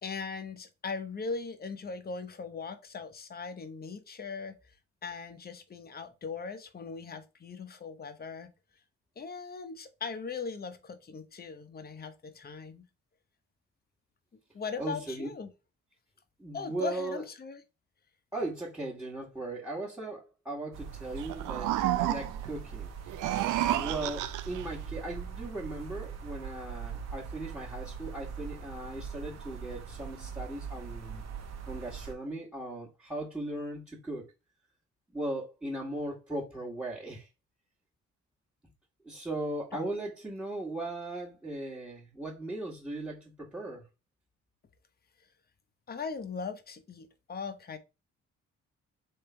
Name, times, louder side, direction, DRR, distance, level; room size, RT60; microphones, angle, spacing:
voice 1, 0.0-4.6 5.0-8.5 9.2-12.8 14.5-15.5 16.5-17.6 45.9-47.8, left 5 dB, 30° left, 0.9 m, -39 dB
voice 2, 14.8-15.3 16.4-17.2 18.3-22.9 23.6-31.2 31.7-34.3 35.1-37.3 39.0-43.8, right 2 dB, 5° right, 1.5 m, -38 dB
sound 1, 20.7-32.1, right 6 dB, 60° right, 1.0 m, -41 dB
sound 2, 21.2-22.5 23.1-24.7, right 14 dB, 90° right, 0.5 m, -30 dB
3.6 x 3.2 x 4.4 m
cardioid pair, 90°, 30 cm